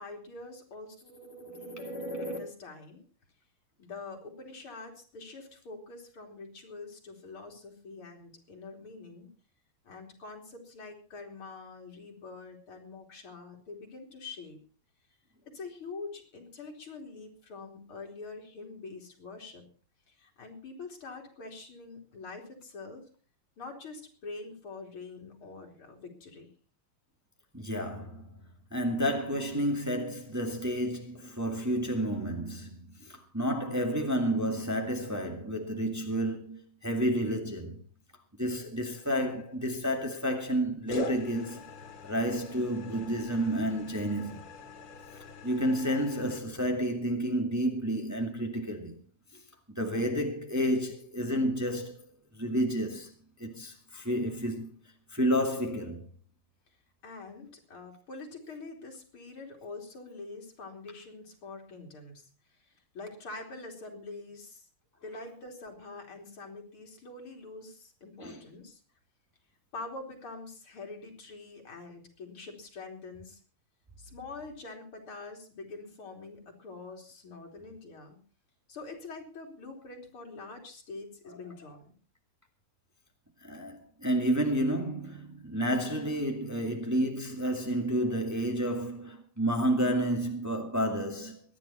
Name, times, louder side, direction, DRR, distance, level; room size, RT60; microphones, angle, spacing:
voice 1, 0.0-3.0 3.8-9.3 9.8-14.6 15.5-19.6 20.1-23.1 23.6-26.5 57.0-62.3 62.9-64.7 65.0-68.8 69.7-73.4 74.0-78.2 78.7-81.9, left 3 dB, 75° left, 4.1 m, -44 dB
voice 2, 27.5-37.8 38.4-41.6 42.0-44.4 45.1-49.0 49.7-52.0 52.3-53.1 53.4-54.7 55.1-56.1 68.2-68.4 81.3-81.4 83.4-91.4, equal, 10° right, 1.9 m, -30 dB
sound 1, 38.9-39.6 40.9-46.4, left 2 dB, 90° left, 2.8 m, -43 dB
24.0 x 10.0 x 4.3 m
omnidirectional pair, 2.4 m